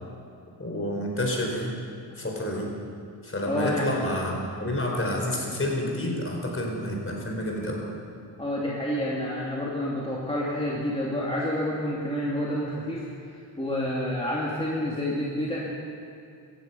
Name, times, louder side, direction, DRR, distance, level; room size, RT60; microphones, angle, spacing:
voice 1, 0.6-1.7 2.2-2.7 3.2-7.9, left 1 dB, 30° left, 0 dB, 4.4 m, -29 dB
voice 2, 3.5-3.9 8.4-15.7, left 1 dB, 15° left, -5 dB, 2.6 m, -29 dB
17.0 x 15.0 x 5.6 m, 2.6 s
cardioid pair, 75°, 42 cm